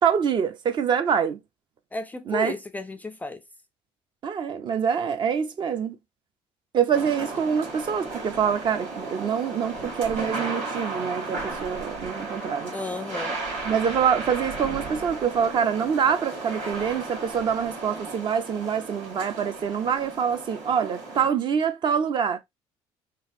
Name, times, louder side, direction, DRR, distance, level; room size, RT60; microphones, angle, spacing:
voice 1, 0.0-1.4 2.3-2.5 4.2-6.0 6.7-12.7 13.6-22.4, right 7 dB, 40° right, 0.5 m, -25 dB
voice 2, 1.9-3.4 12.7-13.4, left 3 dB, 15° left, 0.3 m, -33 dB
sound 1, 6.9-21.3, right 3 dB, 85° right, 2.1 m, -35 dB
3.9 x 2.4 x 2.6 m
cardioid pair, 125°, 12 cm